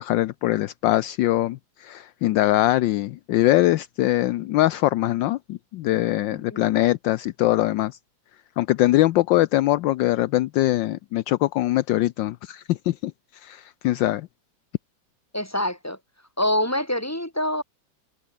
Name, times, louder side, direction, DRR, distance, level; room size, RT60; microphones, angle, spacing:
voice 1, 0.0-8.0 8.6-13.1 13.4-14.3, left 15 dB, 75° left, 1.3 m, -22 dB
voice 2, 6.3-6.7 15.3-16.0 16.4-17.6, left 1 dB, 5° left, 5.1 m, -26 dB
omnidirectional pair, 2.1 m